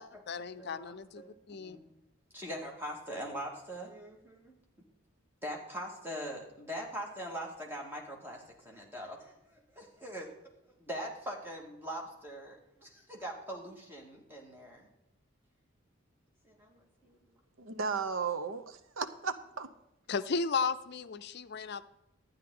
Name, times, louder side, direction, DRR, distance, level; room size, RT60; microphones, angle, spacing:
voice 1, 0.0-1.2 1.5-1.8 20.1-21.9, left 5 dB, 55° left, 12 dB, 0.5 m, -35 dB
voice 2, 0.6-1.9 2.3-4.6 5.4-10.3 10.8-14.9 16.4-17.4, equal, 10° right, -1 dB, 1.9 m, -42 dB
voice 3, 17.6-19.7, right 5 dB, 90° right, 11 dB, 0.8 m, -35 dB
12.0 x 9.3 x 3.8 m, 0.89 s
head